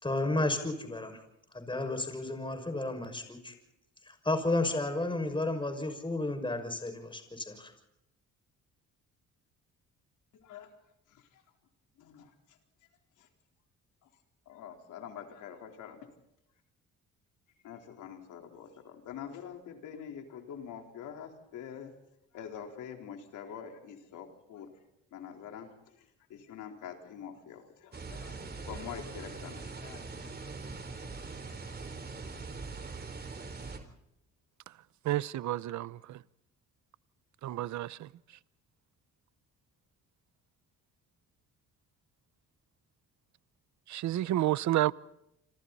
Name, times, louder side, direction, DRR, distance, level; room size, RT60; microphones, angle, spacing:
voice 1, 0.0-1.2 1.5-3.5 4.1-7.7, left 2 dB, 15° left, 6.1 m, -32 dB
voice 2, 10.3-10.7 11.1-11.4 12.0-12.6 13.2-13.3 14.0-14.1 14.5-16.1 17.6-21.9 22.3-24.7 25.1-30.3, left 8 dB, 85° left, 4.1 m, -46 dB
sound 1, 27.9-33.8, right 4 dB, 35° right, 4.2 m, -42 dB
voice 3, 35.1-36.0 37.4-38.0 43.9-44.9, right 14 dB, 70° right, 0.8 m, -29 dB
28.5 x 26.5 x 4.2 m
cardioid pair, 90°, 30 cm